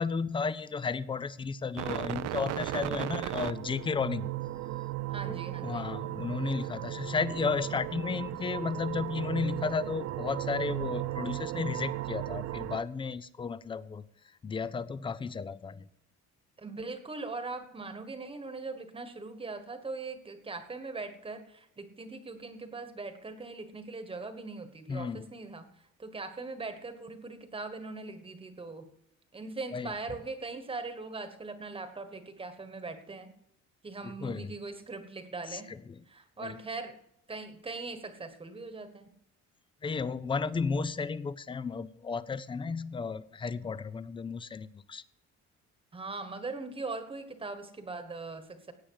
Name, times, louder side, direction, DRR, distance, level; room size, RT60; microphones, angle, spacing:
voice 1, 0.0-4.3 5.3-14.0 14.4-15.9 24.9-25.3 29.7-29.9 34.2-34.5 35.5-35.6 35.9-36.0 36.4-36.6 39.8-45.0, left 5 dB, 15° left, 17 dB, 0.4 m, -33 dB
sound 1, 1.8-12.8, right 15 dB, 55° right, 0.6 m, -36 dB
voice 2, 5.1-5.9 16.6-25.6 26.0-28.9 29.3-33.3 33.8-35.7 36.1-37.0 37.3-39.1 45.9-48.7, right 3 dB, 20° right, 9 dB, 1.3 m, -40 dB
17.0 x 8.8 x 4.7 m, 0.76 s
cardioid pair, 155°, 30 cm